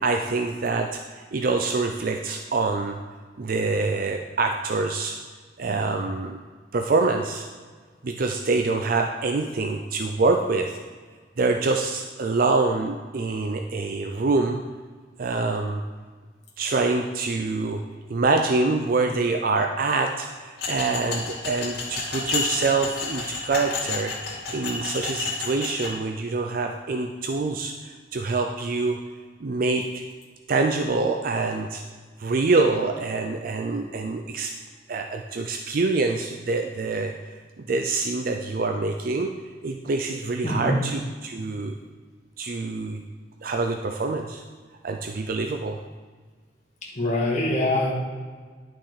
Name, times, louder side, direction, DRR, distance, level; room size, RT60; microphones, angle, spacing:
voice 1, 0.0-3.0 3.4-5.2 5.6-6.4 6.7-7.5 8.0-10.8 11.4-14.6 15.2-15.8 16.6-17.8 18.1-29.0 29.4-30.0 30.5-31.8 32.2-34.5 34.9-37.1 37.6-39.3 39.6-41.7 42.4-43.0 43.4-44.4 44.8-45.8, right 3 dB, 55° right, 4 dB, 0.5 m, -25 dB
sound 1, 20.6-25.9, left 4 dB, 65° left, 2.7 m, -30 dB
voice 2, 40.4-40.8 47.0-47.9, left 1 dB, 40° left, -4 dB, 2.1 m, -23 dB
11.0 x 5.9 x 4.9 m, 1.5 s
head